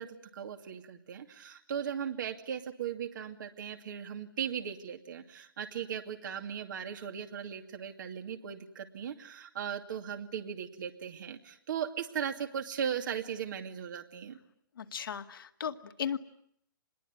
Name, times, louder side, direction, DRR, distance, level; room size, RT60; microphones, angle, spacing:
voice 1, 0.0-14.4, right 8 dB, 60° right, 4 dB, 2.5 m, -38 dB
voice 2, 14.8-16.2, left 8 dB, 75° left, 7 dB, 2.2 m, -36 dB
26.0 x 21.5 x 9.6 m, 0.70 s
hypercardioid pair, 155°, 12 cm